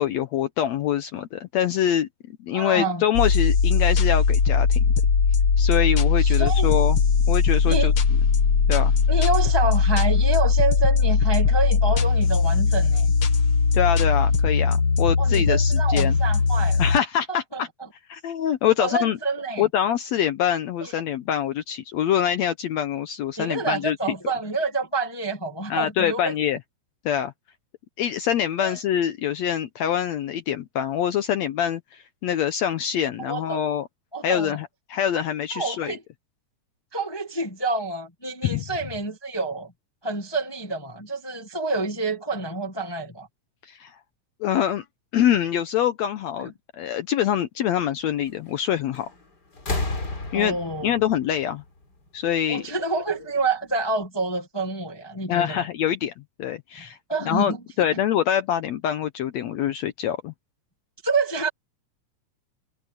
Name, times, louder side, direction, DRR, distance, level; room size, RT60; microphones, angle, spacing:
voice 1, 0.0-2.1 2.4-4.9 5.6-7.0 7.3-7.9 8.7-8.9 13.7-16.2 16.8-17.7 18.1-19.2 19.6-24.0 25.7-26.6 27.1-27.3 28.0-33.9 34.2-36.0 38.4-38.6 43.7-44.0 44.4-44.8 45.1-49.1 50.3-50.6 50.8-51.6 52.1-52.7 55.3-56.1 56.4-57.0 57.3-60.3, left 10 dB, 70° left, 1.8 m, -25 dB
voice 2, 2.5-3.0 6.2-6.7 7.6-7.9 9.1-13.1 15.2-16.8 17.3-17.6 18.8-19.7 20.8-20.9 23.4-26.3 28.6-28.8 33.2-33.6 34.1-34.6 35.5-36.0 36.9-39.7 40.0-43.3 46.4-46.5 50.3-50.9 52.5-55.6 57.1-57.6 57.9-58.0 61.0-61.5, right 3 dB, 15° left, 0.9 m, -28 dB
sound 1, 3.1-17.0, left 5 dB, 50° left, 1.8 m, -20 dB
sound 2, 48.9-49.2 49.5-52.3 53.4-53.5, left 2 dB, 30° left, 4.0 m, -32 dB
omnidirectional pair, 3.7 m